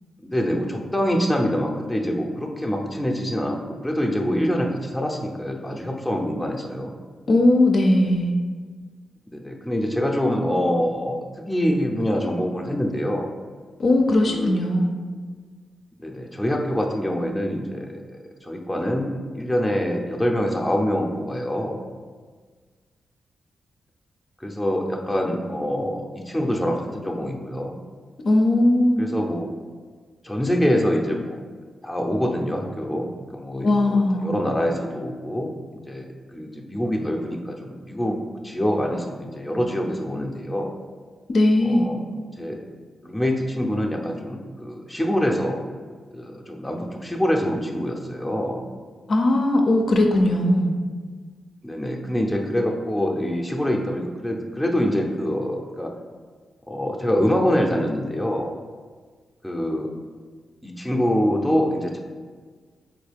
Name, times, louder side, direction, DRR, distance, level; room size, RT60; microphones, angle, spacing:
voice 1, 0.2-3.6 3.8-7.0 9.3-13.3 14.3-14.6 16.0-21.8 24.4-27.8 29.0-29.5 30.2-31.4 31.8-33.1 33.3-35.5 35.9-36.1 36.3-38.2 38.4-40.7 41.6-42.0 42.4-42.6 43.0-45.6 46.1-48.6 51.6-55.9 56.7-58.5 59.4-59.9 60.6-62.0, equal, 5° left, 0 dB, 0.5 m, -25 dB
voice 2, 7.3-8.3 13.8-14.9 28.2-29.1 33.6-34.3 41.3-41.9 49.1-50.7, left 1 dB, 60° left, 2 dB, 0.4 m, -18 dB
3.7 x 2.3 x 3.3 m, 1.5 s
cardioid pair, 65°, 0 cm